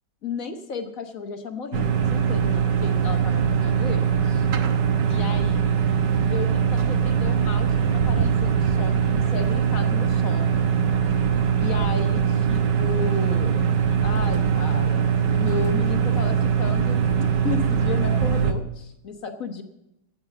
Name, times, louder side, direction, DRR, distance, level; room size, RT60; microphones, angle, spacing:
voice 1, 0.2-4.5 5.1-5.7 6.3-10.6 11.6-13.6 14.0-19.6, left 5 dB, 45° left, 6 dB, 1.5 m, -34 dB
sound 1, 1.7-18.5, right 7 dB, 65° right, 1.6 m, -22 dB
13.5 x 8.9 x 6.8 m, 0.86 s
omnidirectional pair, 2.2 m